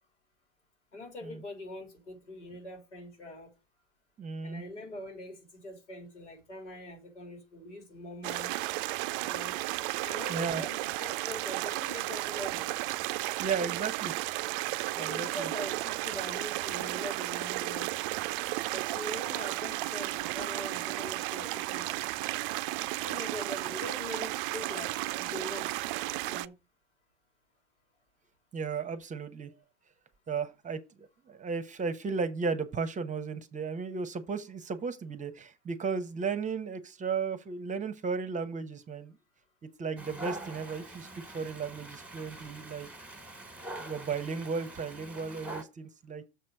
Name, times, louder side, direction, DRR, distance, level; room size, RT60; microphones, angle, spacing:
voice 1, 0.9-3.5 4.4-8.5 9.2-9.6 10.0-12.7 14.9-17.9 18.7-21.9 23.0-24.9 25.2-25.8 26.2-26.5, left 1 dB, 90° left, 3.4 m, -43 dB
voice 2, 4.2-4.6 10.3-10.6 13.4-14.1 15.0-15.5 28.5-29.5 30.3-39.1 39.8-41.1 41.3-42.9 43.8-46.2, right 5 dB, 20° right, 0.9 m, -35 dB
sound 1, 8.2-26.5, right 19 dB, 50° right, 0.5 m, -34 dB
Dog, 40.0-45.6, right 2 dB, 5° right, 1.5 m, -44 dB
6.8 x 4.3 x 6.4 m
hypercardioid pair, 90°, 35 cm